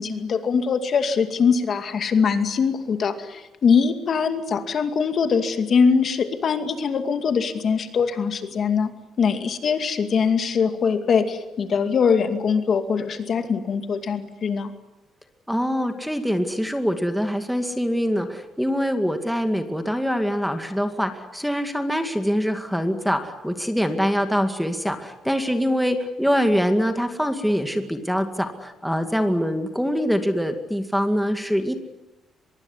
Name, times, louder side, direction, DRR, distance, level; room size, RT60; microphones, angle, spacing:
voice 1, 0.0-8.9 9.2-14.7, left 6 dB, 45° left, 7 dB, 2.4 m, -22 dB
voice 2, 15.5-31.8, equal, ahead, 7 dB, 2.2 m, -24 dB
24.0 x 22.5 x 9.8 m, 1.0 s
cardioid pair, 135°, 0 cm